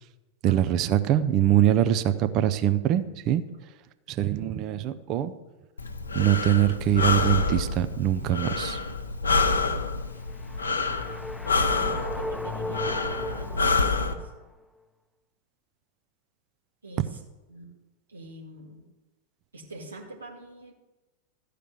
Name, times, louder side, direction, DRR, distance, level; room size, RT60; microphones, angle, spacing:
voice 1, 0.4-3.4 4.1-5.3 6.1-8.8, right 11 dB, 40° right, 10 dB, 0.6 m, -23 dB
Breathing, 5.8-14.1, left 4 dB, 75° left, 0.8 m, -27 dB
sound 1, 10.1-14.5, left 1 dB, 5° left, 0.5 m, -36 dB
voice 2, 11.7-14.3 16.8-17.2 17.5-17.6 18.1-18.8 19.5-20.7, right 2 dB, 75° right, -1 dB, 2.2 m, -43 dB
13.5 x 5.0 x 7.8 m, 1.1 s
figure-of-eight pair, 90°, 0 cm